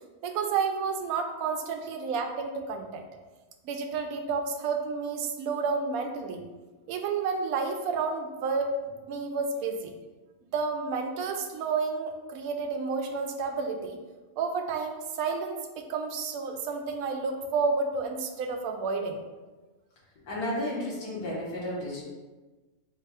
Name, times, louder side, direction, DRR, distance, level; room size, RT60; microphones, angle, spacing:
voice 1, 0.2-3.0 3.6-6.4 6.9-9.9 10.5-14.0 14.4-19.2, right 4 dB, 75° right, 4 dB, 1.0 m, -30 dB
voice 2, 20.3-22.0, left 1 dB, 85° left, -5 dB, 1.8 m, -32 dB
4.2 x 2.2 x 4.7 m, 1.2 s
omnidirectional pair, 1.6 m